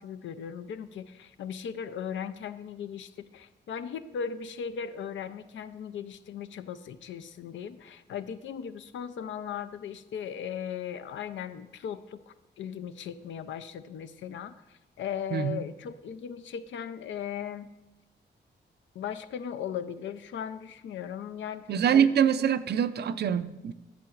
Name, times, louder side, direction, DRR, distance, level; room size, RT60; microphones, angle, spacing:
voice 1, 0.0-17.7 18.9-22.1, left 8 dB, 85° left, 12 dB, 0.4 m, -38 dB
voice 2, 15.3-15.6 21.7-23.7, right 8 dB, 60° right, 13 dB, 0.4 m, -24 dB
11.5 x 6.8 x 2.4 m, 1.0 s
cardioid pair, 90°, 19 cm